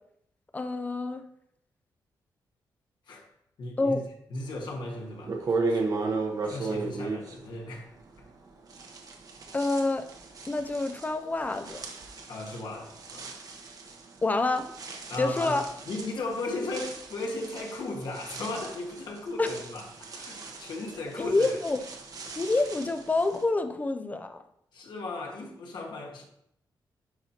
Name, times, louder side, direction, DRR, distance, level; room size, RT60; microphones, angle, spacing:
voice 1, 0.5-1.2 3.8-4.0 9.5-10.1 10.5-11.8 14.2-14.8 15.2-15.7 19.4-19.6 21.2-21.8 22.4-24.4, left 2 dB, 20° left, 8 dB, 0.4 m, -27 dB
voice 2, 3.6-4.0 4.3-5.8 6.4-7.9 12.3-13.3 15.1-15.6 15.9-19.9 20.1-21.6 24.7-26.2, left 2 dB, 65° left, 0 dB, 1.4 m, -36 dB
sound 1, 4.7-4.8 5.2-8.4 8.7-23.4, right 3 dB, 50° right, 0.9 m, -36 dB
10.5 x 4.3 x 2.8 m, 0.74 s
wide cardioid pair, 150°, 8 cm